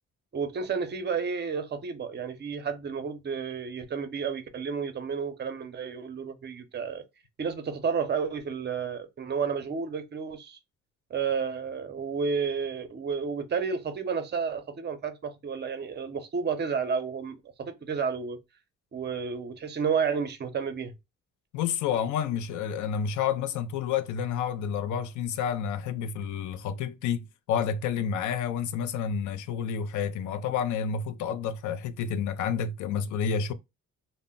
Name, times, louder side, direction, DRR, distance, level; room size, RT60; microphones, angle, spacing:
voice 1, 0.3-7.0 7.4-10.6 11.1-18.4 18.9-20.9, right 6 dB, 35° right, 0.6 m, -31 dB
voice 2, 21.5-33.5, left 7 dB, 75° left, 0.4 m, -29 dB
2.1 x 2.1 x 3.6 m
cardioid pair, 90°, 30 cm